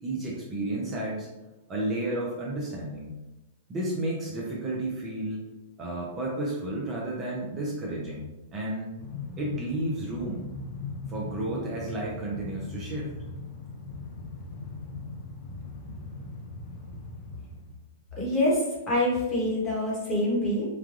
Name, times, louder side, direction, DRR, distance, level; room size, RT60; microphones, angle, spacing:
voice 1, 0.0-1.3 1.7-3.1 3.7-5.5 5.8-8.9 9.4-10.5 11.1-13.1, right 1 dB, 25° right, -3 dB, 0.6 m, -32 dB
Train, 9.0-17.8, left 3 dB, 35° left, 0.5 m, -39 dB
voice 2, 18.2-20.7, left 1 dB, 20° left, -5 dB, 1.1 m, -26 dB
3.2 x 2.3 x 2.5 m, 1.0 s
hypercardioid pair, 140°, 0 cm